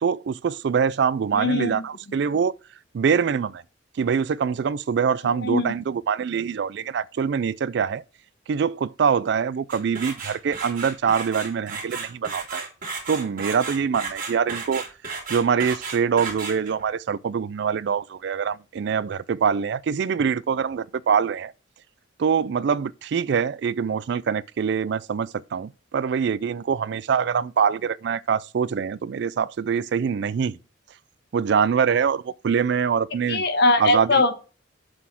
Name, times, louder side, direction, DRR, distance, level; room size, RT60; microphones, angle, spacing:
voice 1, 0.0-2.5 2.9-3.6 4.0-8.0 8.5-12.7 13.1-14.8 15.3-21.5 22.2-30.6 31.3-33.4 33.8-34.2, right 6 dB, 60° right, 0.3 m, -24 dB
voice 2, 1.3-1.8 5.4-5.7 33.3-34.3, left 2 dB, 55° left, 1.4 m, -21 dB
sound 1, 9.7-16.8, right 4 dB, 45° right, 3.2 m, -34 dB
7.7 x 4.2 x 5.6 m
head